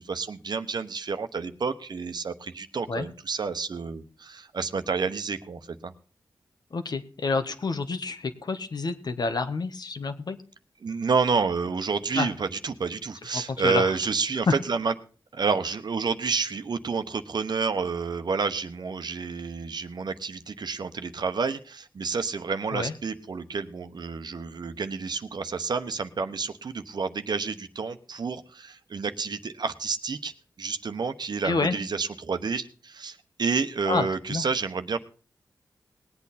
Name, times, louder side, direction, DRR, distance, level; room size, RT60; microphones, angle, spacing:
voice 1, 0.0-5.9 10.8-14.9 15.3-30.3 30.6-35.0, right 5 dB, 65° right, 9 dB, 1.0 m, -29 dB
voice 2, 6.7-10.4 12.2-12.3 13.3-13.9 14.5-14.6 22.7-22.9 31.4-31.8 33.9-34.4, left 4 dB, 60° left, 9 dB, 1.3 m, -28 dB
19.5 x 8.5 x 4.2 m, 0.40 s
cardioid pair, 70°, 8 cm